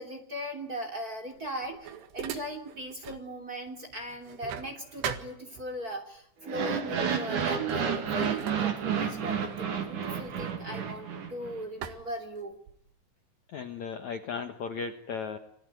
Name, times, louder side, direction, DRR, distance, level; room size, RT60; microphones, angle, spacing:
voice 1, 0.0-12.6, right 1 dB, 25° right, 5 dB, 2.5 m, -39 dB
sound 1, 1.3-3.3 3.7-6.0 6.8-7.1 7.4-11.3 11.8-12.9, right 9 dB, 65° right, 3.6 m, -42 dB
sound 2, 6.4-11.6, right 7 dB, 45° right, 3.3 m, -31 dB
voice 2, 13.5-15.4, left 5 dB, 85° left, 6 dB, 1.6 m, -36 dB
29.0 x 19.5 x 9.6 m, 0.71 s
omnidirectional pair, 5.7 m